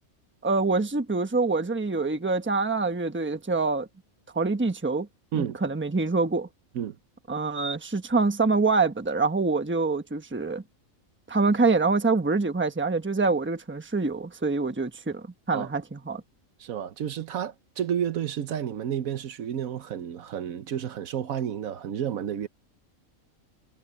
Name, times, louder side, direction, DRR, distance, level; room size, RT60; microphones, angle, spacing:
voice 1, 0.4-3.9 4.3-5.1 5.3-6.5 7.3-10.6 11.3-16.2, right 3 dB, 10° right, 1.0 m, -25 dB
voice 2, 16.6-22.5, right 9 dB, 75° right, 1.2 m, -31 dB
omnidirectional pair, 1.5 m